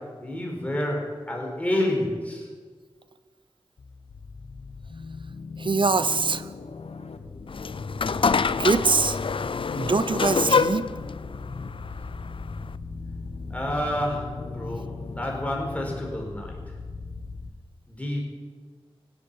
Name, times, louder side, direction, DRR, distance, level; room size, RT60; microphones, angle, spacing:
voice 1, 0.0-2.5 13.5-16.6 17.9-18.2, left 1 dB, 15° left, -1 dB, 4.6 m, -29 dB
sound 1, 3.8-17.5, left 4 dB, 80° left, 1.1 m, -38 dB
voice 2, 5.6-6.5 8.6-9.2 9.8-10.9, right 4 dB, 55° right, 13 dB, 0.8 m, -23 dB
sound 2, 7.5-12.8, left 5 dB, 60° left, 0.5 m, -26 dB
17.0 x 8.5 x 8.6 m, 1.5 s
wide cardioid pair, 65°, 10 cm